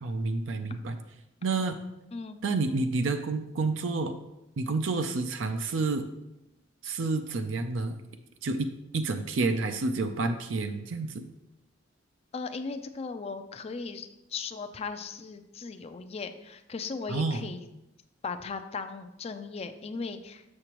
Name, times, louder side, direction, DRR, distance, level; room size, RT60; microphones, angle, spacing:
voice 1, 0.0-1.0 1.4-1.8 2.4-4.2 4.6-6.1 6.8-8.0 8.4-8.7 8.9-11.1 17.1-17.5, right 3 dB, 75° right, 7 dB, 0.5 m, -29 dB
voice 2, 12.3-17.7 18.2-20.4, left 4 dB, 30° left, 9 dB, 0.4 m, -37 dB
6.8 x 6.5 x 2.9 m, 0.92 s
head